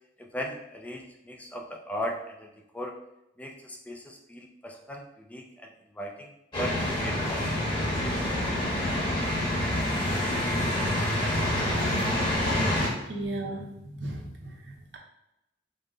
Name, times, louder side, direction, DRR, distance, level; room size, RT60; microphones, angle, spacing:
voice 1, 0.2-3.0 3.4-8.4 12.8-12.9, equal, 10° left, 2 dB, 0.3 m, -38 dB
sound 1, 6.5-12.9, left 1 dB, 25° left, 1.2 m, -27 dB
voice 2, 12.7-15.0, right 1 dB, 70° right, 0 dB, 0.9 m, -37 dB
5.3 x 2.1 x 3.8 m, 0.88 s
head